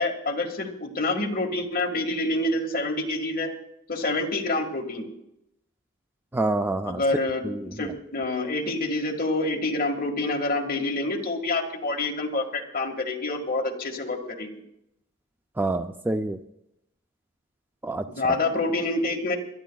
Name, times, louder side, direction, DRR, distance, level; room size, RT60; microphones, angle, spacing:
voice 1, 0.0-3.5 3.9-5.1 6.8-14.6 18.1-19.4, left 2 dB, 40° left, 1 dB, 1.7 m, -27 dB
voice 2, 6.3-7.0 7.4-7.9 15.6-16.4 17.8-18.0, right 2 dB, 10° right, 7 dB, 0.4 m, -27 dB
27.5 x 12.5 x 2.3 m, 0.82 s
head